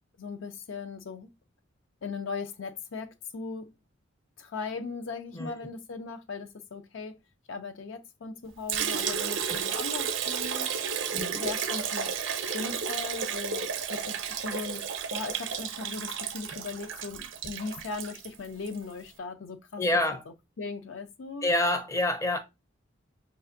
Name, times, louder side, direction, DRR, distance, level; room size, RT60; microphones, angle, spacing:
voice 1, 0.2-1.3 2.0-3.7 4.4-7.2 7.5-10.7 11.3-12.2 12.5-14.8 15.1-19.8 20.6-21.5, left 4 dB, 70° left, 0.5 m, -38 dB
Liquid, 8.7-18.8, right 7 dB, 70° right, 0.5 m, -32 dB
voice 2, 19.8-20.2 21.4-22.4, left 1 dB, 15° left, 0.5 m, -27 dB
5.4 x 2.4 x 2.5 m
head